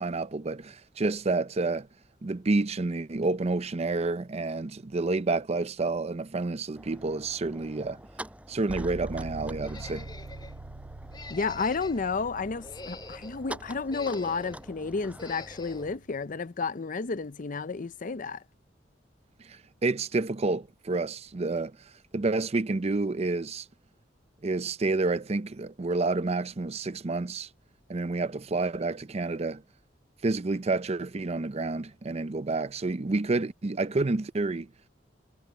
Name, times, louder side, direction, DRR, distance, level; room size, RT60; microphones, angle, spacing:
voice 1, 0.0-1.9 2.2-8.0 8.5-10.1 19.4-21.8 22.1-23.7 24.4-27.5 27.9-29.6 30.2-34.7, right 3 dB, 35° right, 0.5 m, -29 dB
sound 1, 6.7-16.0, right 1 dB, 10° right, 5.7 m, -47 dB
sound 2, 8.7-16.4, right 2 dB, 70° right, 0.9 m, -44 dB
sound 3, 9.6-10.6 11.1-12.1 12.5-13.4 13.9-14.7 15.2-15.9, left 2 dB, 25° left, 3.6 m, -45 dB
voice 2, 11.3-18.4, left 4 dB, 45° left, 0.6 m, -31 dB
head